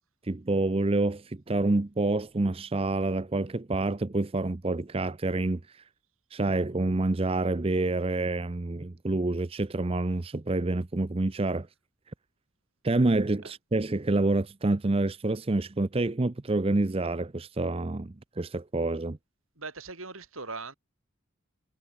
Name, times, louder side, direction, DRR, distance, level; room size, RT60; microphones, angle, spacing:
voice 1, 0.2-5.8 6.3-11.7 12.8-19.2, right 2 dB, 25° right, 0.6 m, -27 dB
voice 2, 19.6-20.7, right 4 dB, 85° right, 5.5 m, -40 dB
head